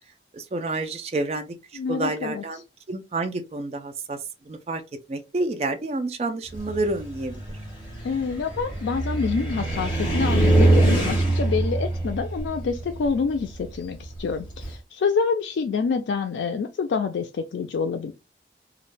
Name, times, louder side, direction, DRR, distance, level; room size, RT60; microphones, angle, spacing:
voice 1, 0.3-1.6 1.9-2.6 2.9-4.2 4.5-4.8 5.1-7.6, right 2 dB, 35° right, 0.3 m, -29 dB
voice 2, 1.7-2.4 8.0-18.1, left 5 dB, 85° left, 0.3 m, -27 dB
Car, 6.5-14.8, right 2 dB, 25° left, 1.0 m, -24 dB
2.3 x 2.1 x 3.1 m
head